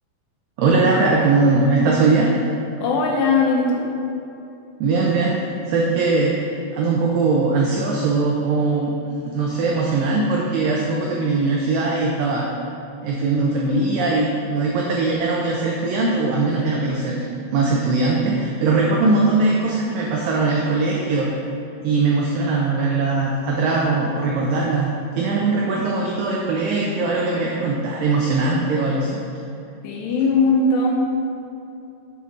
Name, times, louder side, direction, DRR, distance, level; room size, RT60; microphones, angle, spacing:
voice 1, 0.6-2.3 4.8-5.4 5.7-8.9 9.3-12.5 13.0-17.3 17.5-21.4 21.8-29.2, right 3 dB, 85° right, -2 dB, 2.0 m, -20 dB
voice 2, 2.8-3.9 29.8-30.9, left 3 dB, 85° left, -1 dB, 3.1 m, -19 dB
7.4 x 5.6 x 3.7 m, 2.7 s
omnidirectional pair, 4.8 m